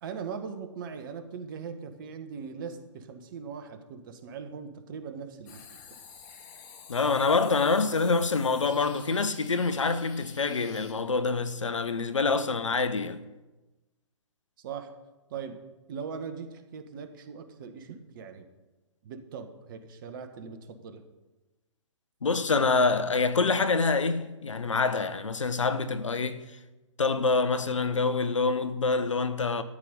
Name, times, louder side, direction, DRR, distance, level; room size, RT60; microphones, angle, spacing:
voice 1, 0.0-5.8 14.6-14.9 15.3-15.6 15.9-18.5 19.0-21.0, right 6 dB, 45° right, 1.5 m, -40 dB
sound 1, 5.5-10.9, left 6 dB, 35° left, 2.2 m, -50 dB
voice 2, 6.9-13.2 22.2-26.4 27.0-29.6, left 4 dB, 75° left, 1.0 m, -26 dB
13.5 x 9.9 x 5.4 m
figure-of-eight pair, 130°, 16 cm